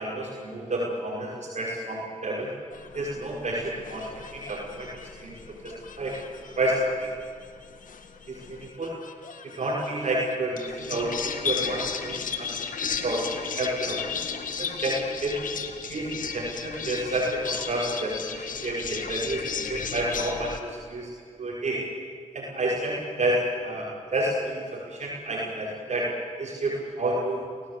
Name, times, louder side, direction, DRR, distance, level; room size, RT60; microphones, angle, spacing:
voice 1, 0.0-2.5 2.9-4.9 5.2-6.2 6.6-7.1 8.3-9.0 9.4-14.1 14.5-15.4 15.9-21.1 21.4-21.8 22.3-26.1 26.4-27.5, right 1 dB, 60° right, -3 dB, 5.4 m, -30 dB
sound 1, 2.7-20.6, left 6 dB, 75° left, 1.9 m, -35 dB
29.5 x 17.0 x 8.4 m, 2.2 s
cardioid pair, 50°, 14 cm